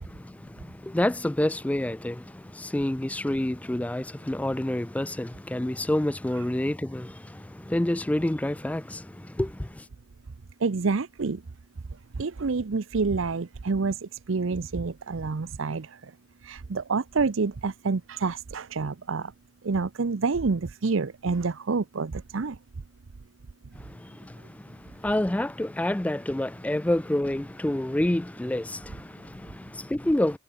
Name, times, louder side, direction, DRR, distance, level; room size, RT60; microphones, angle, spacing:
voice 1, 0.0-9.8 23.8-30.4, left 1 dB, 5° left, 0.3 m, -28 dB
voice 2, 10.6-11.4 12.2-15.9 16.4-19.3 19.6-22.6, right 4 dB, 70° right, 0.6 m, -28 dB
head